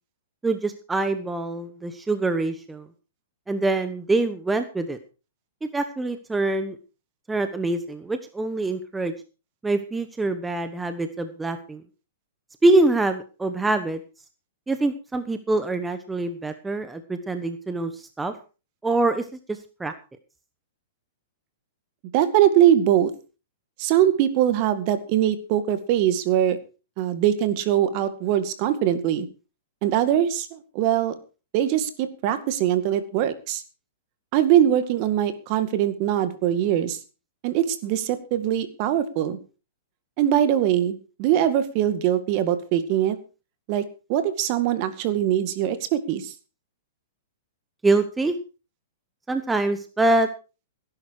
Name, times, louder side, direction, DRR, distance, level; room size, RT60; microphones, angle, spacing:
voice 1, 0.4-2.9 3.5-5.0 5.6-6.8 7.3-9.1 9.6-11.8 12.6-14.0 14.7-18.3 18.8-19.9 47.8-48.4 49.3-50.3, right 2 dB, 10° right, 9 dB, 1.1 m, -24 dB
voice 2, 22.1-23.1 23.8-26.6 27.0-29.3 29.8-31.2 31.5-33.6 34.3-37.0 37.4-39.4 40.2-43.2 43.7-43.8 44.1-46.3, right 11 dB, 40° right, 12 dB, 2.1 m, -22 dB
17.5 x 10.5 x 4.8 m, 0.34 s
hypercardioid pair, 145°, 0 cm